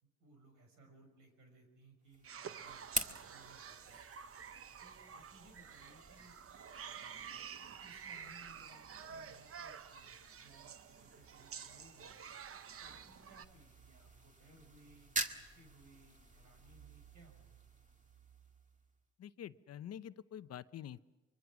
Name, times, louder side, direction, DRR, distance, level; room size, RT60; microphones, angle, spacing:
voice 1, 0.0-4.0 4.8-6.4 6.9-7.2 7.8-12.3 12.8-17.6, right 2 dB, 85° right, 4 dB, 5.8 m, -63 dB
sound 1, 2.1-19.0, right 2 dB, 25° right, 1.8 m, -48 dB
sound 2, 2.2-13.4, right 7 dB, 45° right, 0.9 m, -50 dB
voice 2, 19.2-21.0, left 10 dB, 55° left, 14 dB, 0.8 m, -47 dB
24.5 x 23.0 x 6.2 m, 1.2 s
cardioid pair, 90°, 30 cm